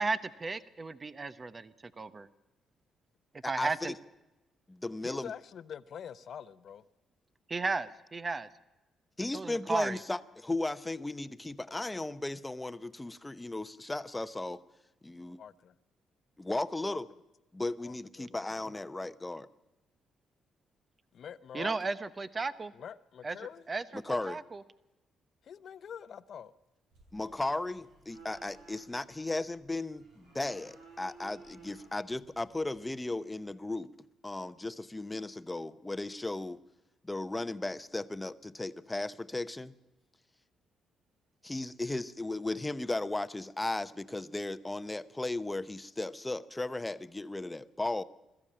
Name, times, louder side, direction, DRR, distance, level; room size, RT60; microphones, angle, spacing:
voice 1, 0.0-2.3 3.5-3.9 7.5-8.5 9.3-10.0 21.5-22.7 23.2-23.4 23.7-24.6, right 3 dB, 30° right, 14 dB, 0.9 m, -34 dB
voice 2, 3.4-3.9 4.7-5.3 9.2-14.6 15.0-15.4 16.4-17.1 17.5-19.5 23.9-24.4 27.1-33.9 34.2-36.6 37.0-39.7 41.4-48.0, left 2 dB, 15° left, 13 dB, 0.9 m, -36 dB
voice 3, 5.0-6.8 15.4-15.5 16.8-17.0 17.8-18.4 21.1-21.8 22.7-23.6 25.4-26.5, left 8 dB, 60° left, 14 dB, 0.8 m, -45 dB
sound 1, 26.9-32.9, right 3 dB, 85° right, 7.5 m, -57 dB
21.5 x 14.5 x 8.8 m, 1.0 s
cardioid pair, 90°, 0 cm